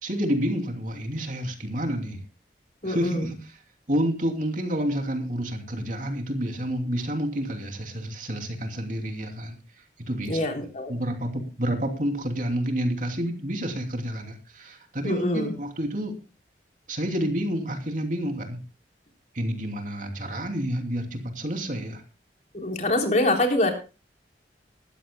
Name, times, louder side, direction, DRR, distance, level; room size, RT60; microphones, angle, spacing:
voice 1, 0.0-2.2 2.8-3.5 3.9-9.6 10.1-10.6 10.9-16.2 16.9-18.6 19.3-22.0, equal, 50° right, 4 dB, 2.9 m, -29 dB
voice 2, 2.8-3.3 10.3-11.0 15.0-15.5 22.5-23.7, left 1 dB, 45° left, 2 dB, 3.7 m, -25 dB
20.5 x 14.0 x 2.2 m, 0.31 s
head